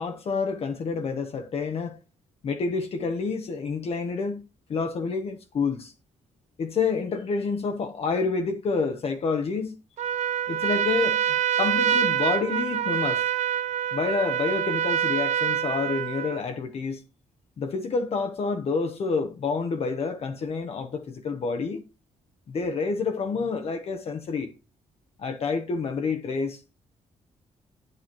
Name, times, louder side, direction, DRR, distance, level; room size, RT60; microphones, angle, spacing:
voice 1, 0.0-2.0 2.4-4.4 4.7-5.9 6.6-9.8 10.5-13.2 13.9-17.0 17.6-21.8 22.5-24.5 25.2-26.6, left 4 dB, 55° left, 1.1 m, -28 dB
Trumpet, 10.0-16.4, right 10 dB, 70° right, 0.6 m, -26 dB
9.5 x 8.0 x 4.5 m
wide cardioid pair, 150°, 12 cm